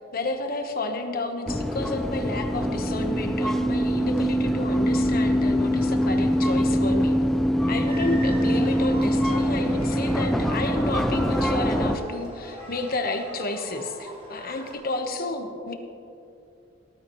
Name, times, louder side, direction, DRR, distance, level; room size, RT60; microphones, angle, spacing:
voice 1, 0.1-7.2 7.7-15.7, left 2 dB, 50° left, 5 dB, 1.2 m, -31 dB
sound 1, 1.5-12.0, equal, ahead, 0.5 m, -23 dB
sound 2, 7.9-14.7, right 1 dB, 35° right, 3.1 m, -41 dB
19.5 x 12.0 x 3.1 m, 2.7 s
head